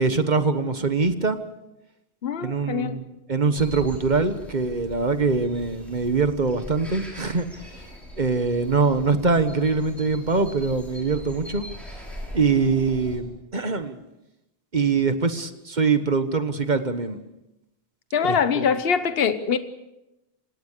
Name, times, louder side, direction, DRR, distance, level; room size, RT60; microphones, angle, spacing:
voice 1, 0.0-1.4 2.4-7.7 8.2-11.7 12.3-14.0 14.7-17.2 18.2-18.7, right 4 dB, 45° right, 10 dB, 1.4 m, -23 dB
voice 2, 2.2-3.0 18.1-19.6, left 6 dB, 65° left, 11 dB, 1.2 m, -23 dB
sound 1, 3.5-13.2, equal, ahead, 6.4 m, -41 dB
27.5 x 17.5 x 6.8 m, 0.93 s
omnidirectional pair, 1.1 m